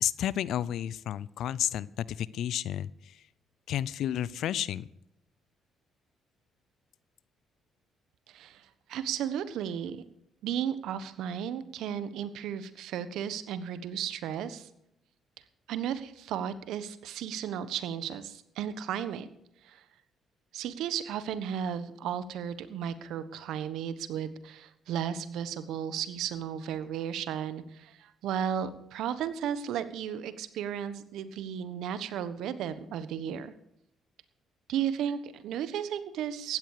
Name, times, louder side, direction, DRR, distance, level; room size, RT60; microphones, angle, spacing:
voice 1, 0.0-3.2 3.7-4.9, left 11 dB, 70° left, 20 dB, 0.6 m, -31 dB
voice 2, 8.3-10.0 10.4-14.7 15.7-19.3 19.6-19.8 20.5-33.5 34.7-36.6, right 9 dB, 75° right, 13 dB, 1.3 m, -34 dB
16.0 x 12.0 x 4.9 m, 0.79 s
hypercardioid pair, 55°, 0 cm